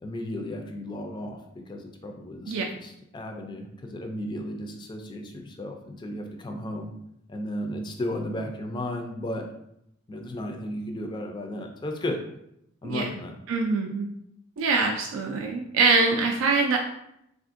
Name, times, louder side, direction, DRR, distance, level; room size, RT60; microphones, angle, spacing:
voice 1, 0.0-1.4 1.7-6.9 7.3-9.4 10.1-12.2 12.8-13.3, left 1 dB, 25° left, 3 dB, 0.3 m, -34 dB
voice 2, 13.5-14.1 14.6-16.8, right 4 dB, 80° right, 1 dB, 0.3 m, -24 dB
3.5 x 2.5 x 2.5 m, 0.78 s
head